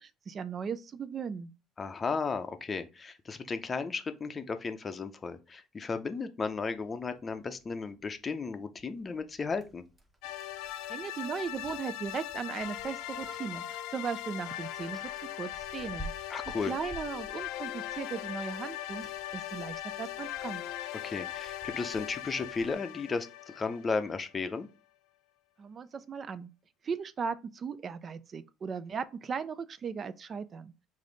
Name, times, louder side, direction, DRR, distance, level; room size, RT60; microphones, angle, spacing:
voice 1, 0.0-1.5 10.9-16.3 16.7-20.6 25.6-26.5 26.8-30.7, right 6 dB, 40° right, 0.3 m, -37 dB
voice 2, 1.8-9.8 16.3-16.7 21.0-24.7, left 4 dB, 30° left, 0.5 m, -34 dB
Bicycle, 6.5-22.7, right 1 dB, 10° right, 1.0 m, -53 dB
sound 1, 10.2-24.4, left 13 dB, 85° left, 0.4 m, -40 dB
5.1 x 2.6 x 3.8 m
cardioid pair, 115°, 0 cm